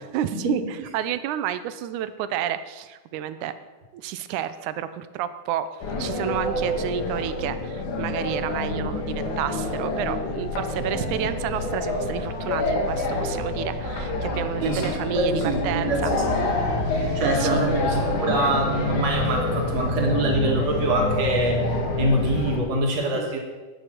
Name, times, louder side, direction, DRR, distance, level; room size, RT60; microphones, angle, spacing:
voice 1, 0.1-3.5 3.9-5.7 6.0-16.1 16.9-17.7 23.1-23.3, right 10 dB, 85° right, 12 dB, 2.1 m, -30 dB
sound 1, 5.8-22.6, left 2 dB, 75° left, 3.1 m, -27 dB
voice 2, 14.6-16.5 17.0-21.6 22.0-23.4, right 2 dB, 60° right, 1 dB, 3.0 m, -25 dB
11.0 x 9.2 x 6.0 m, 1.2 s
omnidirectional pair, 3.5 m